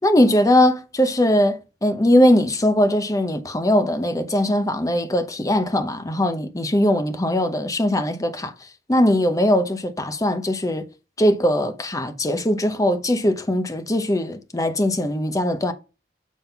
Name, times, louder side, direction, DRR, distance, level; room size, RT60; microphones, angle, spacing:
voice 1, 0.0-8.5 8.9-10.8 11.2-15.7, left 1 dB, 20° left, 0.8 m, -20 dB
7.3 x 3.8 x 5.7 m
head